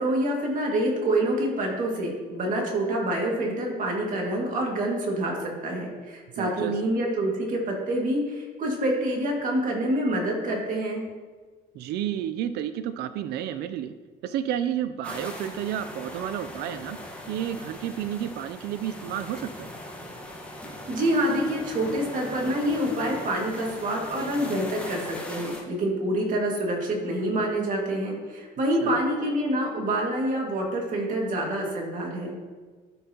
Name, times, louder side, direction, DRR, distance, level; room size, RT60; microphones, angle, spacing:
voice 1, 0.0-11.0 20.9-32.3, right 1 dB, 50° right, -1 dB, 2.1 m, -27 dB
voice 2, 6.4-6.7 11.7-13.9 14.2-17.0 17.3-19.7 28.8-29.0, right 10 dB, 75° right, 12 dB, 0.4 m, -31 dB
sound 1, 15.0-25.6, left 1 dB, 5° left, 1.3 m, -40 dB
12.0 x 5.4 x 2.9 m, 1.4 s
cardioid pair, 110°, 17 cm